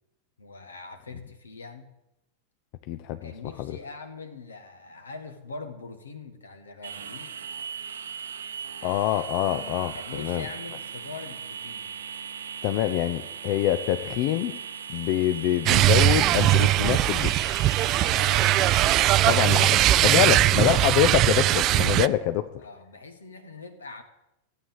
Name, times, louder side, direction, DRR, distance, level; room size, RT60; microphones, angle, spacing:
voice 1, 0.4-1.9 3.2-7.4 9.9-12.0 17.9-20.3 22.6-24.0, left 4 dB, 75° left, 8 dB, 1.7 m, -42 dB
voice 2, 2.9-3.3 3.6-3.8 8.8-10.5 12.6-14.6 14.9-17.4 19.3-22.6, left 13 dB, 45° left, 10 dB, 0.6 m, -25 dB
sound 1, 6.8-19.6, right 7 dB, 70° right, 0.9 m, -38 dB
sound 2, 15.7-22.1, right 14 dB, 35° right, 0.4 m, -20 dB
15.0 x 8.5 x 7.3 m, 0.90 s
figure-of-eight pair, 90°, 0 cm